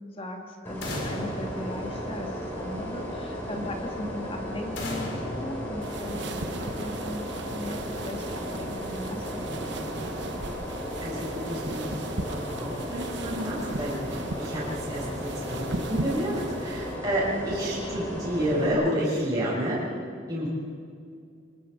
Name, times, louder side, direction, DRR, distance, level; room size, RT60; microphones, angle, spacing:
voice 1, 0.1-10.1, left 1 dB, 30° left, 2 dB, 2.2 m, -38 dB
sound 1, 0.6-18.7, equal, 10° left, 6.2 m, -35 dB
sound 2, 0.8-2.6 4.8-6.5, left 1 dB, 60° left, 4.6 m, -37 dB
sound 3, 5.8-17.0, right 2 dB, 60° right, 1.2 m, -38 dB
voice 2, 11.0-11.9 12.3-16.3 16.6-19.8 20.3-20.5, equal, 20° right, -8 dB, 6.3 m, -30 dB
26.0 x 20.0 x 5.5 m, 2.2 s
head